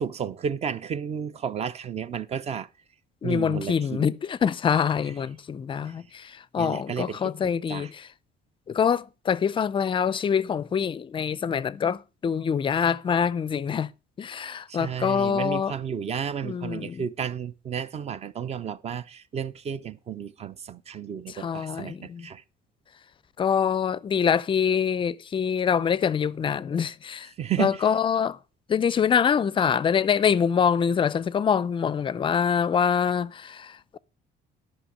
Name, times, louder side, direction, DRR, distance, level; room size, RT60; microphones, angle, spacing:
voice 1, 0.0-2.7 3.2-4.1 6.6-7.3 7.7-7.9 14.7-22.4 27.4-27.8, right 8 dB, 35° right, 0.7 m, -32 dB
voice 2, 3.2-8.1 8.7-13.9 14.2-15.7 16.4-17.0 21.3-22.3 23.4-27.3 27.6-28.4 28.7-34.0, left 7 dB, 25° left, 0.5 m, -25 dB
11.5 x 5.9 x 6.3 m
cardioid pair, 140°, 19 cm